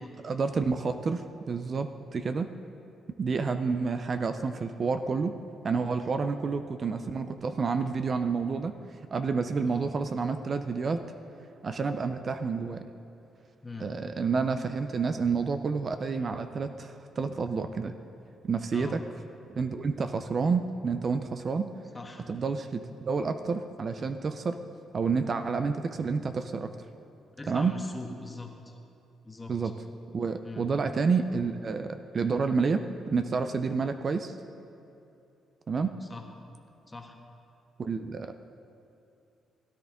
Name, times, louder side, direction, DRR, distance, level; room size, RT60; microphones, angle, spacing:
voice 1, 0.2-2.5 3.2-5.4 5.6-8.7 9.1-11.0 11.6-12.9 13.8-17.9 18.4-19.0 19.5-21.7 22.3-24.6 24.9-26.7 27.5-27.7 29.5-29.7 30.1-32.8 33.1-34.3 35.7-35.9 37.8-38.5, right 5 dB, 40° right, 8 dB, 0.5 m, -29 dB
voice 2, 21.9-22.3 27.3-28.8 29.2-29.5 30.4-30.7 36.0-36.2 36.9-37.2, left 3 dB, 20° left, 2 dB, 1.4 m, -42 dB
16.5 x 10.5 x 3.6 m, 2.7 s
cardioid pair, 90°, 0 cm